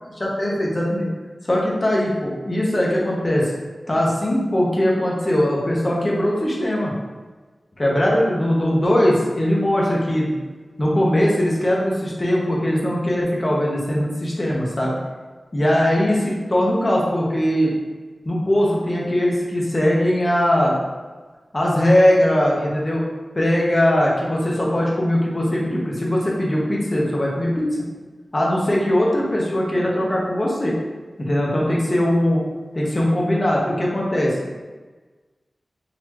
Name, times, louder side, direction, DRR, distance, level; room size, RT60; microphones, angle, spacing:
voice 1, 0.2-1.1 1.4-3.5 3.9-6.9 7.8-10.4 10.8-15.0 15.5-17.7 18.2-20.8 21.5-23.0 23.3-27.8 28.3-30.8 31.2-32.4 32.7-34.4, left 1 dB, 30° left, -4 dB, 0.9 m, -20 dB
4.0 x 2.9 x 2.9 m, 1.3 s
wide cardioid pair, 95°, 0 cm